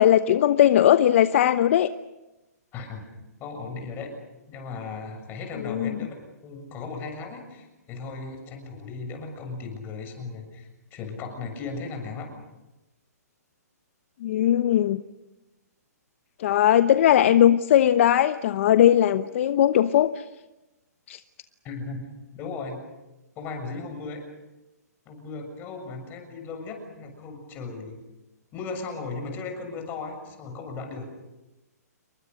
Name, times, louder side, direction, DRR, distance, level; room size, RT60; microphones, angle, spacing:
voice 1, 0.0-1.9 5.6-6.0 14.2-15.0 16.4-20.2 21.1-21.2, left 11 dB, 50° left, 11 dB, 0.9 m, -19 dB
voice 2, 2.7-3.0 3.4-4.1 4.5-6.1 6.4-12.3 21.6-22.1 22.3-22.8 23.4-24.2 25.1-28.0 28.5-31.1, left 4 dB, 20° left, 5 dB, 6.9 m, -36 dB
28.5 x 23.0 x 6.5 m, 1.0 s
hypercardioid pair, 150°, 9 cm